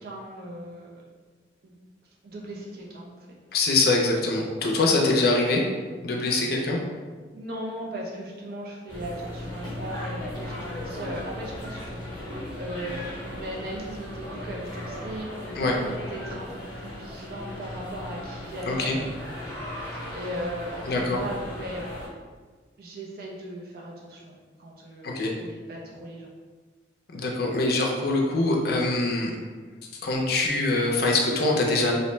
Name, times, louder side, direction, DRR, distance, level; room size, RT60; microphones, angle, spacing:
voice 1, 0.0-1.0 1.6-1.8 2.2-3.4 7.3-12.0 12.6-19.0 20.1-21.9 22.8-26.3, right 1 dB, 55° right, -3 dB, 0.5 m, -37 dB
voice 2, 3.5-5.6 6.0-6.8 15.6-15.7 18.7-19.0 20.9-21.2 25.0-25.3 27.1-29.3 30.0-31.9, left 2 dB, 55° left, -1 dB, 0.4 m, -23 dB
sound 1, 8.9-22.1, left 1 dB, 25° left, 0.8 m, -37 dB
2.6 x 2.0 x 3.1 m, 1.5 s
head